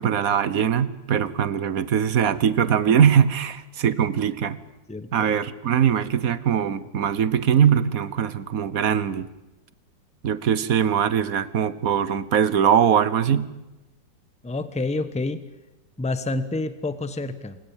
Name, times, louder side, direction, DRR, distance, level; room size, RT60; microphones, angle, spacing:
voice 1, 0.0-4.6 5.1-9.3 10.2-13.5, right 8 dB, 55° right, 16 dB, 1.3 m, -21 dB
voice 2, 4.9-5.3 14.4-15.4 16.0-17.6, left 2 dB, 5° left, 13 dB, 0.8 m, -28 dB
28.0 x 17.5 x 9.0 m, 1.0 s
omnidirectional pair, 2.0 m